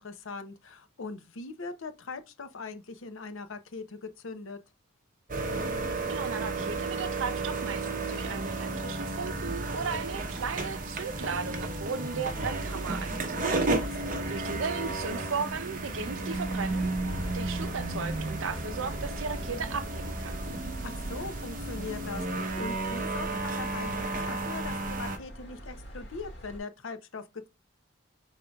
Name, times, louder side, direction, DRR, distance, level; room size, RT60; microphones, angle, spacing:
voice 1, 0.0-4.6 13.8-14.3 20.8-27.5, left 3 dB, 75° left, 0.7 m, -41 dB
sound 1, 5.3-25.2, right 2 dB, 40° right, 0.8 m, -33 dB
voice 2, 6.1-13.6 13.9-14.0 14.3-17.0 17.3-20.4, right 5 dB, 70° right, 0.6 m, -36 dB
sound 2, 16.3-26.6, right 1 dB, 55° left, 2.0 m, -43 dB
5.2 x 3.7 x 2.3 m
head